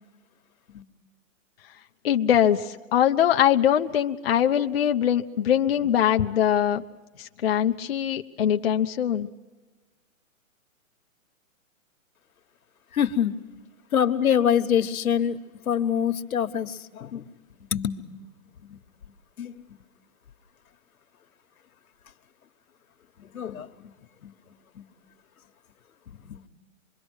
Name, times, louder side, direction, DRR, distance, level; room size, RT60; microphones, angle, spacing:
voice 1, 2.0-6.8 7.2-9.3, left 10 dB, 45° left, 5 dB, 0.7 m, -22 dB
voice 2, 12.9-13.3 13.9-15.4 15.6-17.3 17.7-18.0 18.7-18.8 19.4-19.8 23.2-23.9 24.2-24.3 24.7-24.8 26.1-26.5, left 8 dB, 85° left, 9 dB, 1.5 m, -25 dB
26.0 x 22.5 x 6.3 m, 1.2 s
hypercardioid pair, 170°, 41 cm